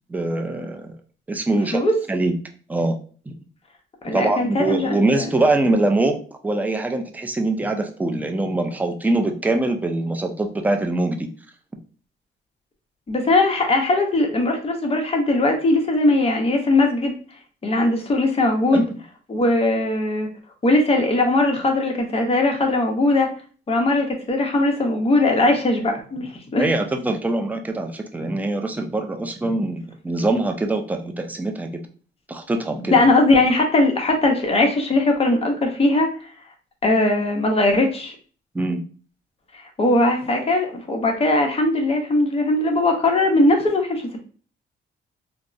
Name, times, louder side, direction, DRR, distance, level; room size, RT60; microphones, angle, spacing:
voice 1, 0.1-0.9 1.3-1.8 2.1-2.3 2.7-3.0 3.3-3.4 4.1-6.2 6.4-11.3 18.7-19.0 26.6-31.7 32.3-32.9 38.5-38.8, right 2 dB, 10° right, 4 dB, 0.4 m, -23 dB
voice 2, 4.0-5.3 13.1-17.2 17.6-18.8 19.3-20.3 20.6-23.3 23.7-26.7 32.9-36.1 36.8-38.1 39.8-44.2, left 2 dB, 30° left, 3 dB, 0.8 m, -19 dB
3.4 x 2.0 x 2.5 m, 0.41 s
cardioid pair, 90°, 20 cm